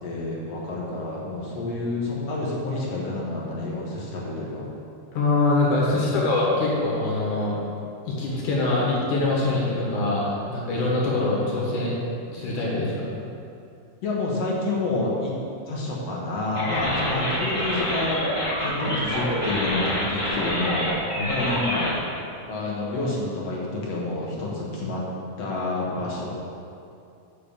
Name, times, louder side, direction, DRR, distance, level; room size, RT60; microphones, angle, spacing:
voice 1, 0.0-4.7 5.9-6.2 14.0-15.3 15.7-18.2 18.6-20.9 21.3-22.0 22.5-25.0 25.4-26.3, left 2 dB, 60° left, -4 dB, 2.4 m, -28 dB
voice 2, 5.1-7.6 8.1-11.9 12.3-13.1 21.2-21.3, left 2 dB, 80° left, -5 dB, 3.2 m, -24 dB
sound 1, 16.5-21.9, equal, 35° left, 0.5 m, -27 dB
6.9 x 6.7 x 6.9 m, 2.5 s
omnidirectional pair, 3.5 m